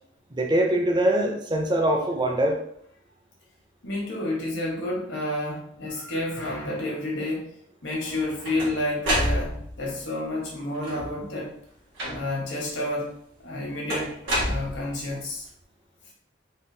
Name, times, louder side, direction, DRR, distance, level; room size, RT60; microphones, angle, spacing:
voice 1, 0.3-2.6, right 1 dB, 25° right, 2 dB, 0.4 m, -23 dB
voice 2, 3.8-7.5 7.8-11.5 12.1-13.1 13.4-14.2 14.4-15.4, left 1 dB, 85° left, -2 dB, 1.2 m, -30 dB
sound 1, 8.0-9.9 10.7-11.3 12.0-12.5 13.9-15.2, equal, 85° right, 1.3 m, -28 dB
3.8 x 2.3 x 2.6 m, 0.70 s
head